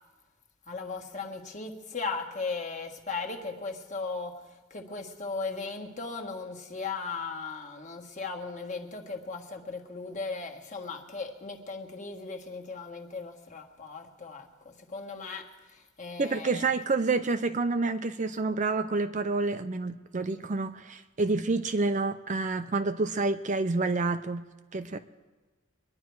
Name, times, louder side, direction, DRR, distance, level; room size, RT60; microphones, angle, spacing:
voice 1, 0.7-4.3 4.7-15.5 16.0-16.6, left 4 dB, 35° left, 1.5 m, -37 dB
voice 2, 16.2-24.5 24.7-25.0, right 3 dB, 35° right, 0.5 m, -28 dB
23.5 x 10.5 x 4.7 m
head